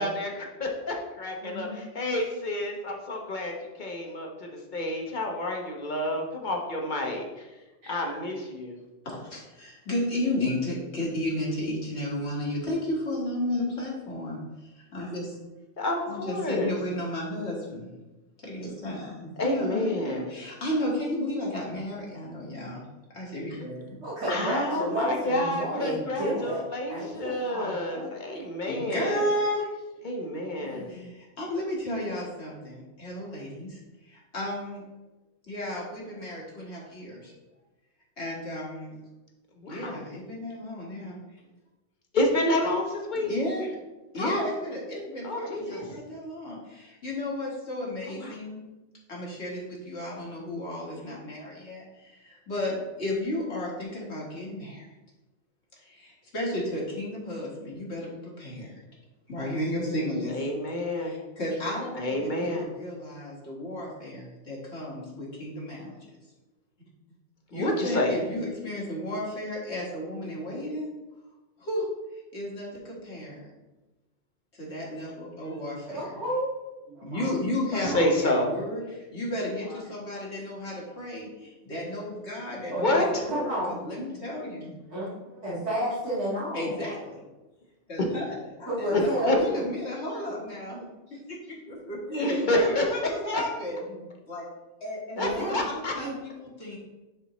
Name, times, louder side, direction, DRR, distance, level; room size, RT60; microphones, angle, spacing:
voice 1, 0.0-7.5 7.9-8.8 15.8-16.7 19.4-20.3 24.3-29.3 30.0-31.0 39.6-40.0 42.1-43.4 44.2-44.4 45.2-45.8 48.1-48.4 60.3-61.1 61.9-62.7 67.5-68.1 77.8-78.6 82.7-83.2 89.3-89.4 92.2-92.8 95.2-95.9, left 1 dB, 40° left, 1 dB, 1.2 m, -29 dB
voice 2, 1.4-1.8 7.8-8.0 24.0-28.1 30.6-31.0 75.9-77.3 77.7-78.1 79.7-79.8 80.1-80.2 82.7-82.9 83.3-83.7 84.9-86.8 88.7-89.6 93.9-94.0 95.2-95.6 96.0-96.1, right 1 dB, 65° right, -11 dB, 2.5 m, -32 dB
voice 3, 9.0-15.4 16.1-17.9 18.4-22.8 23.1-24.1 28.7-29.7 30.9-34.8 35.5-37.3 38.2-39.0 39.7-41.2 43.1-43.7 44.1-48.6 49.1-54.9 55.8-58.8 59.3-60.4 61.0-66.0 67.5-70.9 71.6-71.9 72.3-73.5 74.5-76.1 77.0-84.8 86.5-87.3 87.9-90.8 91.3-93.8 94.3-94.4 94.8-96.8, left 1 dB, 60° left, -4 dB, 2.2 m, -33 dB
10.0 x 4.5 x 3.1 m, 1.1 s
omnidirectional pair, 1.3 m